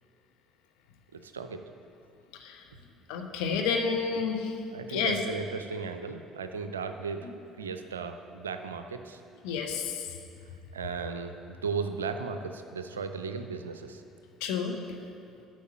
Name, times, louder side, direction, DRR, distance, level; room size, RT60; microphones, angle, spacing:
voice 1, 1.1-1.6 3.1-3.4 4.7-7.3 7.6-9.2 10.7-14.0, right 5 dB, 80° right, 8 dB, 0.4 m, -36 dB
voice 2, 3.1-4.5 4.9-5.2 9.4-10.1 14.4-14.8, left 5 dB, 65° left, 4 dB, 0.9 m, -30 dB
8.4 x 5.9 x 7.3 m, 2.5 s
figure-of-eight pair, 55°, 0 cm